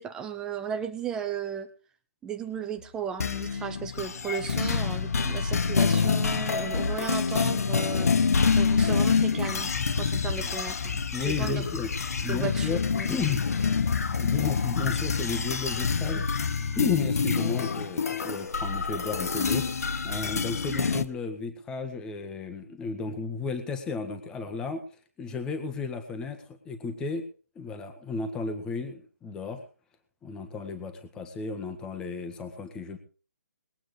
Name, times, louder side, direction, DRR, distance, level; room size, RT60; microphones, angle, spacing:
voice 1, 0.0-1.7 2.2-8.1 8.6-11.6 12.3-13.4, right 7 dB, 10° right, 10 dB, 0.7 m, -35 dB
sound 1, 3.2-21.0, left 5 dB, 65° left, 1.3 m, -27 dB
voice 2, 11.1-11.9 12.2-12.8 13.1-13.5 14.2-16.2 16.7-24.8 25.2-27.2 27.5-29.6 30.2-33.0, left 5 dB, 10° left, 6 dB, 1.6 m, -33 dB
21.0 x 8.8 x 4.9 m, 0.39 s
hypercardioid pair, 160°, 9 cm